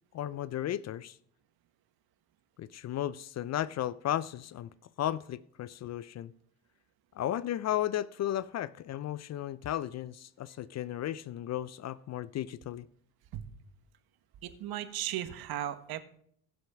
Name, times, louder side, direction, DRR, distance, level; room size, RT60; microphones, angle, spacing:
voice 1, 0.1-1.2 2.6-4.7 5.0-6.3 7.1-12.9, left 12 dB, 40° left, 0.5 m, -34 dB
voice 2, 14.4-16.0, right 12 dB, 55° right, 1.4 m, -36 dB
15.5 x 6.3 x 5.9 m
supercardioid pair, 80°, 44 cm